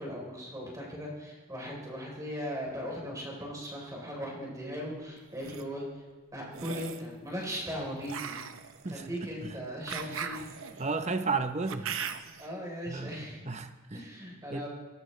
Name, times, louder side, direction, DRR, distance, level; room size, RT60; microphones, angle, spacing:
voice 1, 0.0-6.0 6.3-8.4 8.9-10.5 12.4-13.4 13.9-14.7, equal, 15° right, -3 dB, 3.6 m, -38 dB
sound 1, 5.2-5.6 6.5-7.1 8.0-12.5, right 7 dB, 70° right, 0.8 m, -39 dB
voice 2, 10.8-11.9 12.9-13.1 13.5-14.0 14.5-14.6, right 4 dB, 30° right, 8 dB, 0.8 m, -33 dB
22.5 x 18.0 x 3.2 m, 1.4 s
head